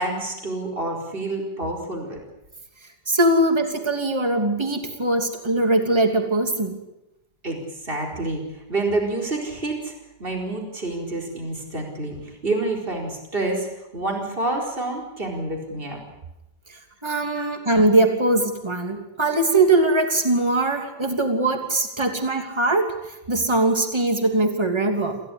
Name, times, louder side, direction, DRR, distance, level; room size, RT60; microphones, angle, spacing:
voice 1, 0.0-2.2 7.4-8.4 8.7-9.9 10.2-16.0 17.3-17.5, right 2 dB, 35° right, 1 dB, 4.8 m, -28 dB
voice 2, 3.1-6.8 17.0-22.9 23.3-25.2, right 2 dB, 15° right, 5 dB, 3.0 m, -21 dB
27.5 x 16.0 x 10.0 m, 0.91 s
omnidirectional pair, 1.7 m